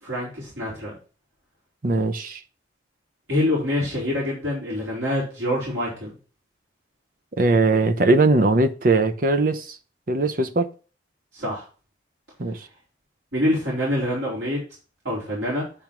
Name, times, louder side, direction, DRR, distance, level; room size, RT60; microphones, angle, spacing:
voice 1, 0.0-0.9 3.3-6.1 11.3-11.7 13.3-14.6 15.0-15.7, left 1 dB, 85° right, 3.6 m, -25 dB
voice 2, 1.8-2.4 7.4-9.8 10.1-10.7 12.4-12.6, right 2 dB, 45° right, 0.7 m, -20 dB
8.7 x 3.5 x 6.0 m
head